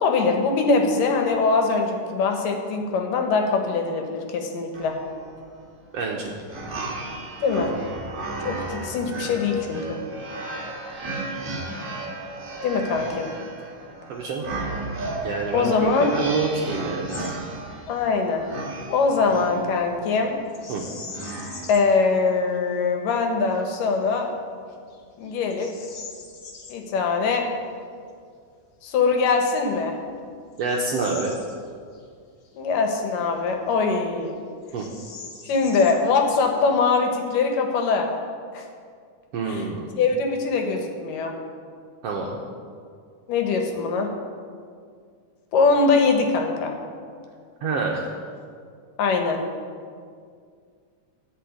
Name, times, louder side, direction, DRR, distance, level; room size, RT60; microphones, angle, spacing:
voice 1, 0.0-4.9 7.4-7.7 8.4-10.0 12.6-13.3 15.5-16.1 17.9-18.4 18.9-20.3 21.7-24.3 25.2-25.7 26.7-27.5 28.8-30.0 32.5-34.3 35.4-38.1 38.5-38.6 39.4-39.7 40.0-41.3 43.3-44.1 45.5-46.7 49.0-49.4, left 4 dB, 80° left, 3 dB, 2.9 m, -22 dB
sound 1, 4.7-21.7, right 2 dB, 35° right, 1.5 m, -35 dB
voice 2, 5.9-6.4 14.1-14.5 15.2-17.4 20.7-20.8 30.6-31.4 34.7-34.8 39.3-39.9 42.0-42.4 47.6-48.1, right 4 dB, 70° right, -1 dB, 1.6 m, -27 dB
Bird vocalization bird call bird song, 17.1-17.4 17.7-18.0 20.5-22.0 22.5-22.6 23.3-23.7 24.2-24.3 24.9-26.8 28.9-29.0 29.6-32.1 32.4-32.5 33.2-34.0 34.3-34.4 34.6-36.8, left 4 dB, 55° left, 1.3 m, -42 dB
13.5 x 5.6 x 8.7 m, 2.2 s
omnidirectional pair, 3.9 m